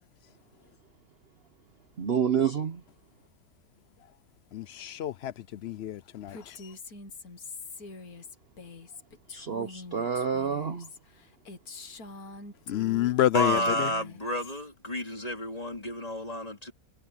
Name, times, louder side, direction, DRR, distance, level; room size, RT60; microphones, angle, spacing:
voice 1, 2.0-2.8 9.3-10.9, right 7 dB, 45° right, 0.9 m, -28 dB
voice 2, 4.5-6.7 12.7-13.9, left 12 dB, 85° left, 0.5 m, -29 dB
Female speech woman speaking, 6.3-13.1 13.4-14.7, left 3 dB, 65° left, 2.3 m, -44 dB
voice 3, 13.3-16.7, equal, 20° left, 3.7 m, -31 dB
omnidirectional pair, 1.7 m